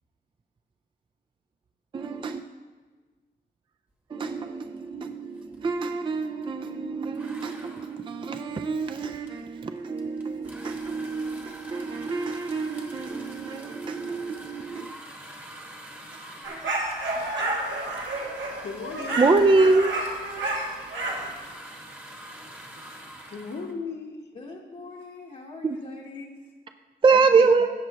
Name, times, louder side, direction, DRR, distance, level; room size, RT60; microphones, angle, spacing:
voice 1, 1.9-2.4 4.1-14.9 19.2-19.9 27.0-27.7, right 4 dB, 25° right, 6 dB, 0.3 m, -25 dB
sound 1, 4.8-5.0 5.3-6.6 7.1-23.7, right 1 dB, 10° right, 1.0 m, -45 dB
sound 2, 16.4-21.3, right 2 dB, 80° right, 2.2 m, -30 dB
voice 2, 18.4-19.2 23.3-24.3 27.1-27.6, left 4 dB, 65° left, 3 dB, 1.1 m, -37 dB
voice 3, 24.3-26.5, left 3 dB, 40° left, -4 dB, 0.9 m, -42 dB
16.5 x 7.4 x 2.9 m, 1.4 s
wide cardioid pair, 175°, 19 cm